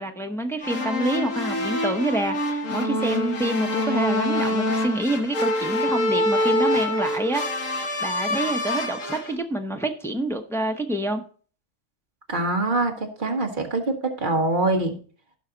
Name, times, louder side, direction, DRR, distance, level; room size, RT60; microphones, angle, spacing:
voice 1, 0.0-7.4 8.0-11.2, right 1 dB, 5° left, 4 dB, 0.6 m, -27 dB
sound 1, 0.6-9.3, left 1 dB, 65° left, 1.9 m, -25 dB
voice 2, 12.3-14.9, right 2 dB, 35° right, 3 dB, 1.7 m, -24 dB
15.5 x 5.7 x 3.9 m, 0.42 s
omnidirectional pair, 1.5 m